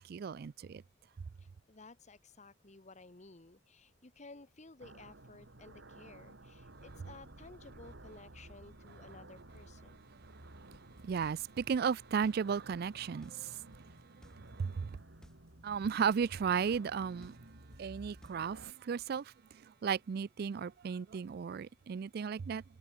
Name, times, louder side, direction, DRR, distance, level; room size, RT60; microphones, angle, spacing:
voice 1, 0.1-0.8 11.0-13.9 14.6-15.0 15.6-17.3 17.8-19.3 19.8-22.6, right 6 dB, 55° right, 0.4 m, -34 dB
voice 2, 1.4-10.0 13.9-14.0, left 3 dB, 40° left, 1.4 m, -55 dB
sound 1, 4.8-18.7, right 2 dB, 75° right, 2.3 m, -54 dB
sound 2, 10.7-18.7, equal, 5° left, 1.4 m, -58 dB
head